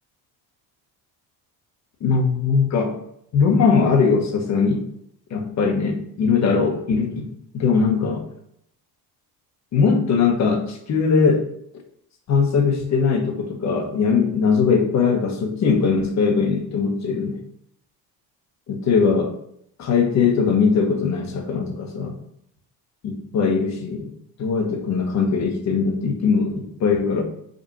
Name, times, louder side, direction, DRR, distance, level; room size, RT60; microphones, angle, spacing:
voice 1, 2.0-3.0 3.3-4.9 5.3-8.3 9.7-11.5 12.3-17.4 18.7-19.3 19.8-22.2 23.0-24.1 24.4-27.2, left 5 dB, 40° left, 4 dB, 1.2 m, -20 dB
5.3 x 4.3 x 5.4 m, 0.72 s
cardioid pair, 155°, 42 cm